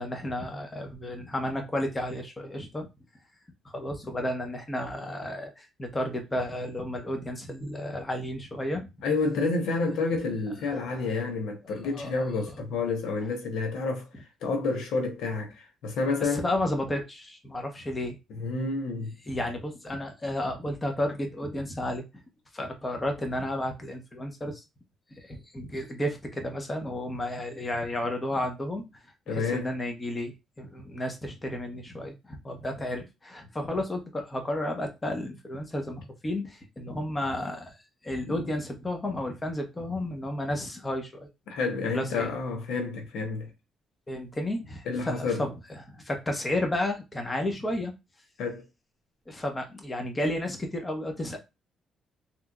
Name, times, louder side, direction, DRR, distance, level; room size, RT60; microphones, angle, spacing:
voice 1, 0.0-2.9 3.7-8.9 10.8-11.1 11.8-12.1 16.2-18.1 19.3-22.0 22.5-24.6 25.1-37.8 38.0-41.3 41.9-42.3 44.1-45.5 45.8-47.9 49.3-51.4, left 1 dB, 20° left, 1.0 m, -32 dB
voice 2, 9.0-14.1 14.4-16.4 18.3-19.1 29.3-29.7 38.3-38.5 41.5-43.5 44.9-45.4 48.4-48.6, left 3 dB, 85° left, 0.8 m, -29 dB
3.6 x 3.0 x 2.3 m
cardioid pair, 90°, 0 cm